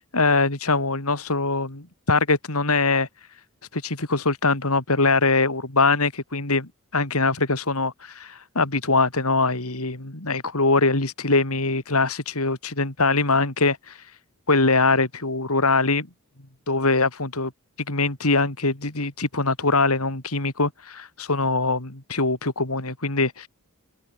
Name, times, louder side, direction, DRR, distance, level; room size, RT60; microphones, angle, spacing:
voice 1, 0.1-3.1 3.7-14.0 14.5-16.1 16.7-17.5 17.9-23.5, left 3 dB, 75° left, 3.7 m, -22 dB
head